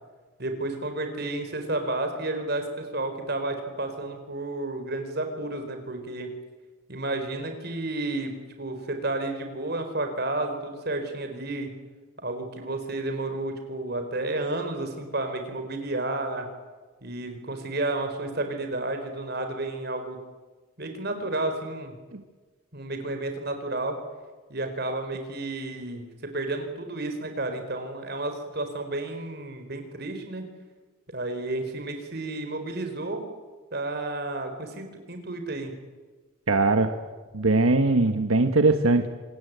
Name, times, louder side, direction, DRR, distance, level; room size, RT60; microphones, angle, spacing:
voice 1, 0.4-6.3 6.9-8.3 8.6-11.7 12.2-16.5 17.0-20.2 20.8-21.9 22.7-24.0 24.5-26.1 26.3-30.4 31.1-33.2 33.7-35.7, right 2 dB, 50° right, 6 dB, 4.4 m, -31 dB
voice 2, 36.5-36.9 37.3-39.1, right 3 dB, 85° right, 7 dB, 1.3 m, -20 dB
26.5 x 20.0 x 9.4 m, 1.3 s
head